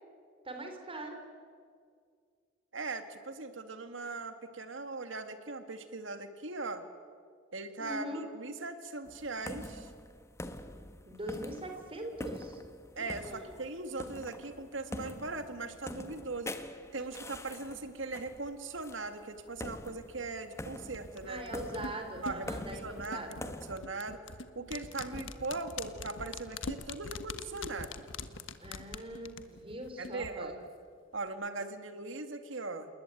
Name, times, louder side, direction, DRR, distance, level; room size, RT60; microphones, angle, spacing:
voice 1, 0.5-1.2 7.8-8.2 11.0-12.6 13.0-13.4 21.3-23.3 25.1-25.2 28.6-30.5, right 1 dB, 30° right, 5 dB, 4.1 m, -41 dB
voice 2, 2.7-6.8 7.5-9.9 13.0-16.6 16.9-21.4 22.2-24.2 24.6-28.0 30.0-30.6 31.1-32.9, right 3 dB, 75° right, 8 dB, 2.3 m, -40 dB
sound 1, 9.1-23.8, left 1 dB, 15° left, 1.3 m, -45 dB
sound 2, 20.9-30.3 30.6-30.7, left 4 dB, 75° left, 1.4 m, -43 dB
28.0 x 20.5 x 9.3 m, 2.1 s
head